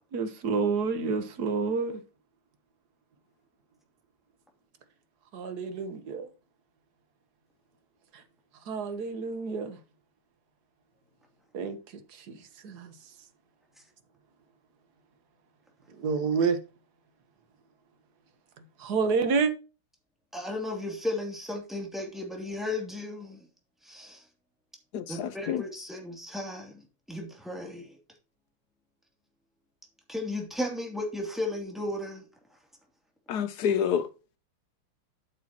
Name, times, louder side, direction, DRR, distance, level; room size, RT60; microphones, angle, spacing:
voice 1, 0.1-2.0 5.3-6.3 8.7-9.8 11.5-11.8 12.3-12.4 12.6-12.9 16.0-16.6 18.8-19.5, right 5 dB, 50° right, 1.6 m, -28 dB
voice 2, 20.3-23.5 23.8-24.3 25.1-28.0 30.1-32.2, left 1 dB, ahead, 2.6 m, -35 dB
voice 3, 24.9-25.6 33.3-34.1, left 8 dB, 70° left, 1.0 m, -28 dB
8.5 x 8.4 x 3.0 m
omnidirectional pair, 2.4 m